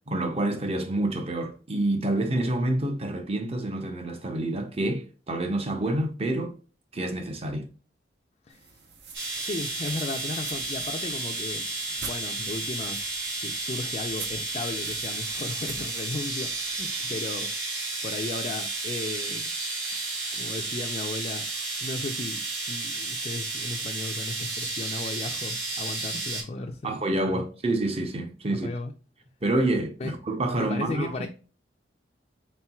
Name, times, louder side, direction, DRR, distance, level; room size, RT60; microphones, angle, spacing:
voice 1, 0.1-6.6 6.9-7.7 26.8-28.7 29.4-31.3, right 1 dB, 35° right, 0.7 m, -28 dB
sound 1, 8.5-17.1, right 6 dB, 70° right, 0.8 m, -46 dB
sound 2, 9.1-26.4, right 3 dB, 85° right, 1.9 m, -32 dB
voice 2, 9.4-11.7 12.0-13.0 13.3-17.5 18.0-19.5 20.3-21.5 21.8-22.4 22.7-27.0 27.2-27.4 28.5-28.9 30.0-30.1 30.4-31.3, left 3 dB, 35° left, 0.4 m, -35 dB
4.3 x 3.8 x 2.3 m
head